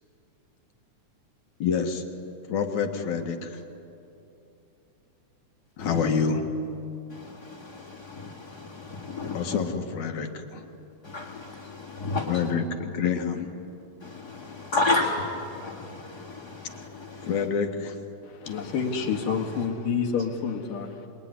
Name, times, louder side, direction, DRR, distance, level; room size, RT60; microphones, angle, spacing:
voice 1, 1.6-2.0 2.5-3.6 5.8-6.4 9.3-10.7 12.3-13.5 17.2-18.0, left 6 dB, 65° left, 5 dB, 2.8 m, -27 dB
voice 2, 5.8-6.1 7.1-9.6 11.0-12.5 14.0-17.5 18.4-19.7, left 2 dB, 35° left, -3 dB, 2.2 m, -32 dB
voice 3, 18.2-21.1, left 6 dB, 80° left, 3 dB, 3.6 m, -29 dB
26.5 x 22.0 x 9.9 m, 2.8 s
omnidirectional pair, 3.7 m